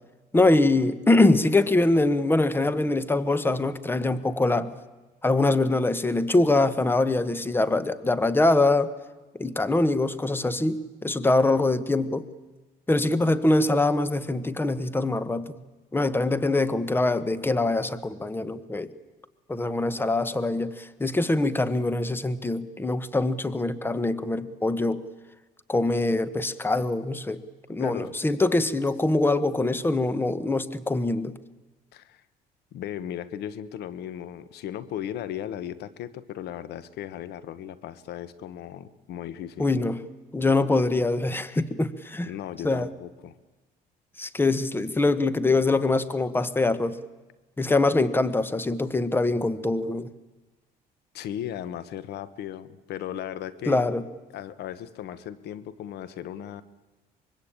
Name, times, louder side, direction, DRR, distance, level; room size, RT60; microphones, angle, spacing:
voice 1, 0.3-4.7 5.2-8.9 9.4-12.2 12.9-15.6 15.9-18.9 19.5-25.0 25.7-27.4 27.7-31.3 39.6-40.0 40.3-42.3 42.6-42.9 44.2-47.0 47.6-50.1 53.7-54.0, left 2 dB, 10° left, 14 dB, 1.3 m, -23 dB
voice 2, 27.8-28.1 31.9-32.2 32.7-39.8 42.2-43.4 51.1-53.8 54.3-56.6, left 10 dB, 75° left, 15 dB, 1.3 m, -36 dB
24.5 x 22.5 x 8.8 m, 1.2 s
cardioid pair, 110°, 17 cm